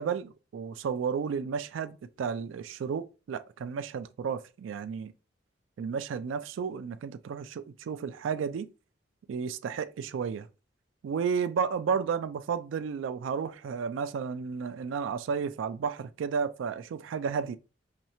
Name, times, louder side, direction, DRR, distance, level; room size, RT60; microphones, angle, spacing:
voice 1, 0.0-5.1 5.8-8.7 9.3-10.5 11.0-17.6, right 6 dB, 90° right, 0.3 m, -32 dB
5.8 x 3.1 x 2.9 m
head